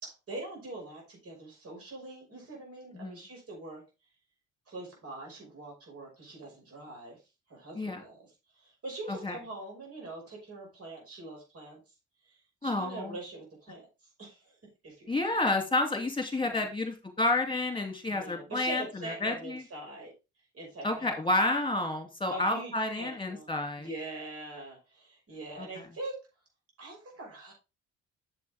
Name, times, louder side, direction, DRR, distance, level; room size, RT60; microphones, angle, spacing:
voice 1, 0.0-3.8 4.7-7.2 7.5-11.8 12.2-13.9 14.2-14.6 14.8-15.2 16.4-16.7 18.1-20.1 20.5-21.2 22.3-22.7 23.0-23.5 23.8-26.2 26.8-27.5, right 2 dB, 50° right, -2 dB, 5.9 m, -43 dB
voice 2, 12.6-13.1 15.1-19.6 20.8-23.9 25.6-25.8, left 2 dB, 15° left, 4 dB, 2.8 m, -30 dB
8.0 x 7.6 x 3.6 m, 0.28 s
cardioid pair, 90°, 30 cm